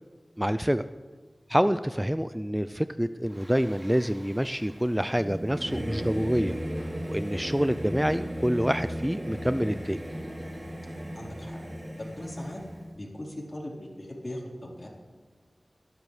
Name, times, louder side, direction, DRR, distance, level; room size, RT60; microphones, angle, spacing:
voice 1, 0.4-0.8 1.5-6.6 7.1-10.0, equal, 5° right, 12 dB, 0.3 m, -27 dB
Singing / Musical instrument, 3.3-12.9, equal, 25° right, 2.5 m, -36 dB
voice 2, 11.1-11.6 12.0-12.6 12.9-14.9, left 1 dB, 40° left, -2 dB, 3.8 m, -39 dB
22.5 x 12.0 x 3.2 m, 1.4 s
wide cardioid pair, 70°, 0 cm